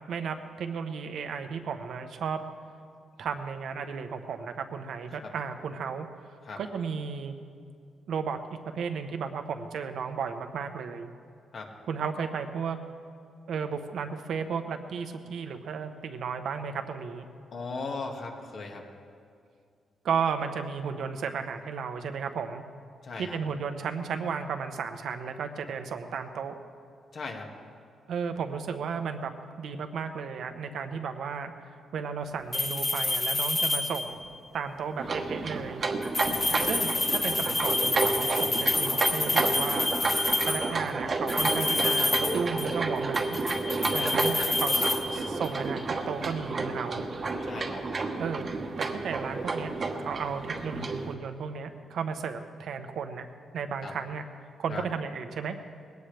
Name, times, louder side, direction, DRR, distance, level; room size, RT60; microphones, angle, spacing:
voice 1, 0.0-2.4 3.2-6.1 6.6-7.3 8.1-11.1 11.9-12.8 13.5-17.3 20.0-22.6 23.2-26.6 28.1-29.3 29.6-31.5 31.9-34.2 34.5-35.8 36.6-39.9 40.4-43.4 43.9-47.0 48.2-48.5 48.8-49.7 50.0-53.3 53.5-54.3 54.6-55.6, right 6 dB, 70° right, 7 dB, 1.1 m, -34 dB
voice 2, 17.5-18.8 23.0-23.4 27.1-27.5 36.3-36.7 43.9-44.3 47.4-47.8 53.8-53.9 54.7-54.8, left 4 dB, 55° left, 1 dB, 2.0 m, -38 dB
sound 1, 32.5-34.3 36.0-40.8 41.3-42.8 43.1-45.6, left 2 dB, 20° left, 1.6 m, -28 dB
sound 2, 35.0-51.1, right 3 dB, 40° right, 1.2 m, -31 dB
20.0 x 17.5 x 3.5 m, 2.3 s
cardioid pair, 115°, 0 cm